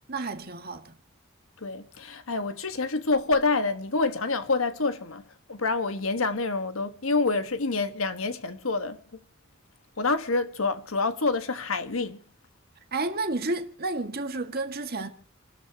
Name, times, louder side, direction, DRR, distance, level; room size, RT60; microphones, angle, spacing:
voice 1, 0.1-0.9 12.9-15.1, right 2 dB, 45° right, 1.8 m, -31 dB
voice 2, 1.6-5.2 5.5-9.0 10.0-12.2, left 3 dB, 80° left, 1.4 m, -27 dB
29.0 x 13.0 x 2.9 m
head